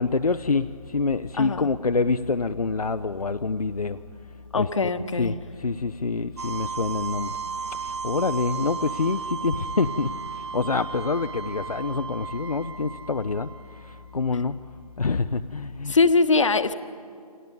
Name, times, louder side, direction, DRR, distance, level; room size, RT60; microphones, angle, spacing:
voice 1, 0.0-4.0 4.5-4.7 5.2-7.4 7.7-14.6 15.0-16.0, left 4 dB, 70° left, 9 dB, 0.7 m, -26 dB
voice 2, 1.4-1.7 4.5-5.3 15.9-16.7, left 3 dB, 50° left, 11 dB, 1.3 m, -22 dB
sound 1, 6.4-14.1, right 5 dB, 45° right, 1.7 m, -35 dB
29.5 x 25.5 x 5.3 m, 2.3 s
figure-of-eight pair, 150°, 20 cm